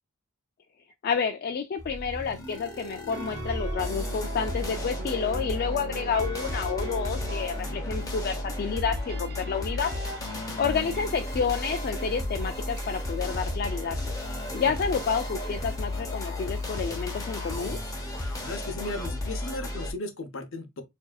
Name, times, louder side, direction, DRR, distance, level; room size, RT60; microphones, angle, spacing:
voice 1, 1.0-9.9 10.6-14.0 14.5-17.8, left 6 dB, 50° left, 0.3 m, -29 dB
sound 1, 1.8-19.9, left 1 dB, 20° left, 1.0 m, -33 dB
sound 2, 3.1-12.9, right 3 dB, 50° right, 0.7 m, -42 dB
voice 2, 10.2-11.0 18.2-20.8, left 2 dB, 70° left, 0.7 m, -37 dB
4.7 x 2.7 x 2.3 m
head